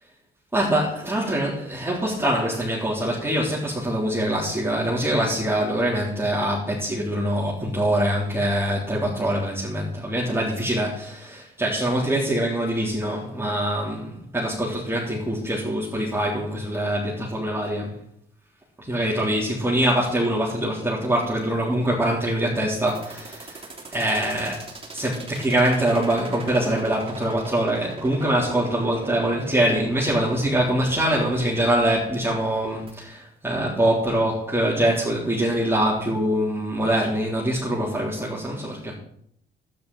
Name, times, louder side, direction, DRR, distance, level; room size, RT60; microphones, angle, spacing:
voice 1, 0.5-18.0 18.8-39.0, right 1 dB, 10° right, -6 dB, 3.6 m, -24 dB
sound 1, 22.9-32.9, right 3 dB, 25° right, 3.6 m, -40 dB
12.0 x 10.0 x 5.5 m, 0.69 s
cardioid pair, 90°, 20 cm